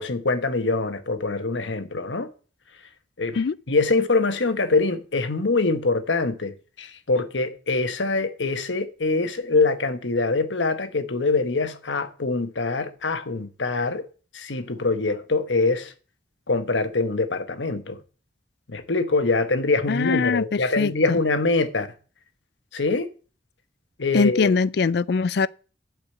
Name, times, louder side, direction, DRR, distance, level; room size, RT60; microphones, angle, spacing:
voice 1, 0.0-2.3 3.2-3.4 3.7-14.0 14.3-15.9 16.5-18.0 18.7-21.9 22.7-23.1 24.0-24.5, left 3 dB, 90° left, 1.2 m, -24 dB
voice 2, 19.9-21.2 24.1-25.5, left 4 dB, 60° left, 0.4 m, -22 dB
12.0 x 5.0 x 7.6 m
head